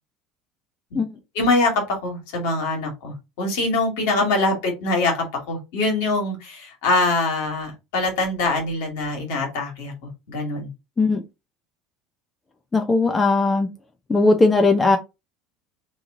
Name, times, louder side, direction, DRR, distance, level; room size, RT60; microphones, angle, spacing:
voice 1, 1.4-9.9 10.3-10.7, left 2 dB, 65° left, 1.9 m, -23 dB
voice 2, 12.7-13.7 14.1-15.0, left 3 dB, 20° left, 0.7 m, -18 dB
3.6 x 3.1 x 3.8 m
figure-of-eight pair, 70°, 0 cm